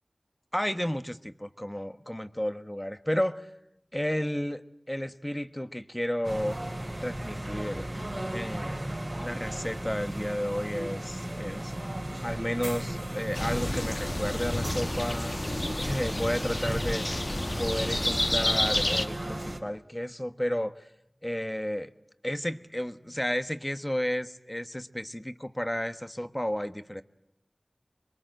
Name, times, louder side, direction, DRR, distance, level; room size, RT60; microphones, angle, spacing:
voice 1, 0.5-3.5 3.9-6.6 7.0-7.9 8.3-8.8 9.2-11.7 12.2-17.0 17.6-20.9 21.2-21.9 22.2-27.0, equal, 15° left, 11 dB, 1.3 m, -32 dB
sound 1, 6.2-19.6, right 1 dB, 45° right, 4.2 m, -36 dB
sound 2, 13.3-19.1, left 1 dB, 40° left, 1.7 m, -30 dB
26.5 x 22.5 x 7.8 m, 0.80 s
wide cardioid pair, 45°, 0 cm